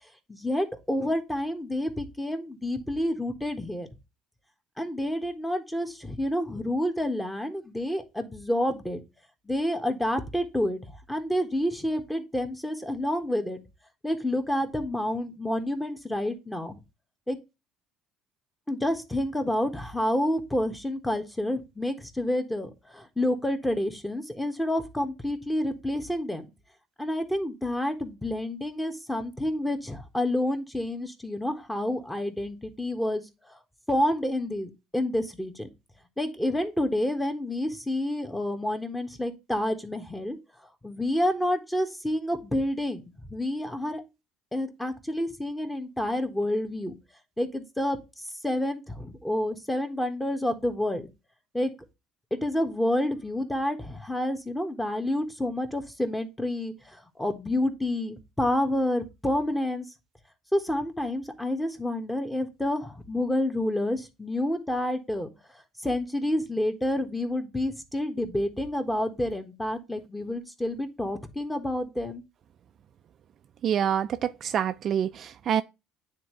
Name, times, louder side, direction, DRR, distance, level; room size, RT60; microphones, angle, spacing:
voice 1, 0.3-3.9 4.8-9.0 9.4-13.6 14.0-16.8 17.3-17.4 18.7-26.5 27.0-33.6 33.9-35.7 36.2-40.4 40.8-43.0 43.3-44.0 44.5-46.9 47.4-48.0 48.4-51.0 51.5-51.7 52.3-59.8 60.5-65.3 65.8-72.2, left 1 dB, 10° left, 1.5 m, -29 dB
voice 2, 73.6-75.6, right 9 dB, 50° right, 0.4 m, -26 dB
9.3 x 3.7 x 3.1 m
supercardioid pair, 80°, 0 cm